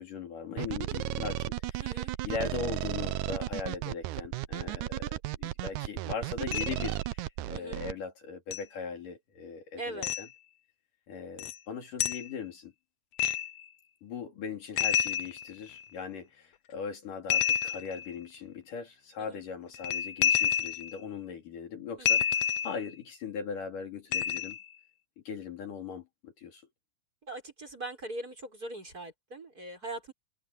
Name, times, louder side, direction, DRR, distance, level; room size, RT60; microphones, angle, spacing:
voice 1, 0.0-10.3 11.1-12.7 14.0-24.6 25.3-26.6, left 6 dB, 60° left, 4.6 m, -39 dB
sound 1, 0.6-7.9, right 15 dB, 80° right, 1.8 m, -34 dB
voice 2, 1.8-2.1 7.5-7.8 9.8-10.1 19.2-19.4 22.0-22.2 27.3-30.1, right 2 dB, 25° right, 6.4 m, -41 dB
sound 2, 6.5-6.9 8.5-8.6 10.0-10.3 11.4-11.6 12.0-12.3 13.2-13.6 14.8-15.8 17.3-18.1 19.7-21.0 22.1-22.9 24.1-24.7, left 9 dB, 85° left, 1.4 m, -29 dB
omnidirectional pair, 4.2 m